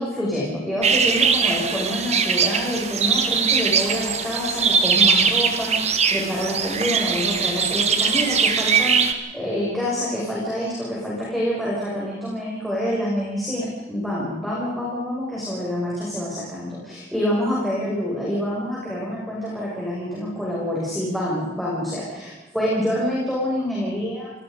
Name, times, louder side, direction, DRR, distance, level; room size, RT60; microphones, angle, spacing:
voice 1, 0.0-24.3, equal, ahead, -6 dB, 6.3 m, -27 dB
sound 1, 0.8-9.1, right 6 dB, 35° right, 1.6 m, -21 dB
28.0 x 19.0 x 5.2 m, 1.1 s
head